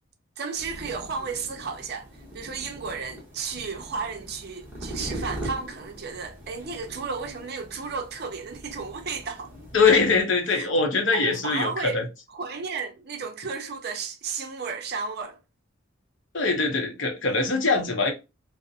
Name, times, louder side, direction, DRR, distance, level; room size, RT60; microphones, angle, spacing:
voice 1, 0.4-2.1 2.3-9.5 10.5-10.7 11.1-12.0 12.3-15.4, right 5 dB, 50° right, 0.5 m, -33 dB
sound 1, 0.5-10.2, right 1 dB, 10° right, 0.8 m, -41 dB
voice 2, 9.7-12.1 16.3-18.1, left 4 dB, 60° left, 0.7 m, -22 dB
2.4 x 2.0 x 2.6 m
head